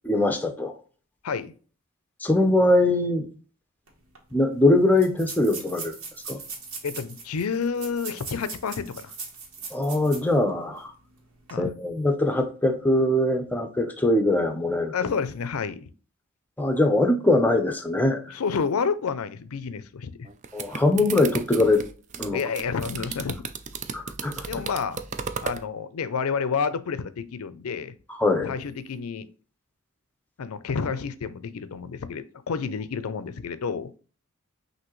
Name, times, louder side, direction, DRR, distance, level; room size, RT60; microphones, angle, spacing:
voice 1, 0.1-0.7 2.2-3.3 4.3-5.9 6.3-6.4 9.7-10.9 11.6-14.9 16.6-18.2 20.5-21.8 22.2-22.4 23.9-24.5 28.2-28.5, left 1 dB, 10° left, 5 dB, 0.6 m, -22 dB
sound 1, 3.9-4.0 4.1-4.2 4.9-10.4 10.8-10.9 11.3-11.5, right 4 dB, 80° right, 1.5 m, -39 dB
voice 2, 6.8-9.1 11.5-11.7 14.9-15.9 18.3-20.3 22.3-23.5 24.4-25.0 25.4-27.9 28.4-29.3 30.4-33.9, left 5 dB, 85° left, 14 dB, 0.5 m, -29 dB
sound 2, 20.2-25.6, right 6 dB, 35° right, 0.4 m, -34 dB
6.0 x 2.7 x 3.0 m, 0.39 s
head